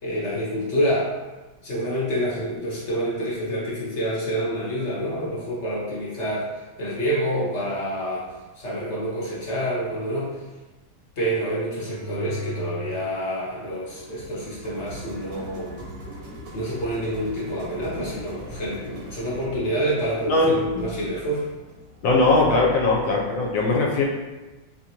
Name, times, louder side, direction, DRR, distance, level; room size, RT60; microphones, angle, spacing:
voice 1, 0.0-1.1 1.6-6.5 6.8-8.3 8.6-10.4 11.2-15.7 16.5-21.4, equal, 50° left, -7 dB, 0.9 m, -27 dB
sound 1, 11.7-13.1 13.5-22.1, equal, 85° right, 2.0 m, -39 dB
voice 2, 22.0-24.0, left 2 dB, 70° left, -2 dB, 1.3 m, -20 dB
5.0 x 2.5 x 2.9 m, 1.2 s
omnidirectional pair, 2.4 m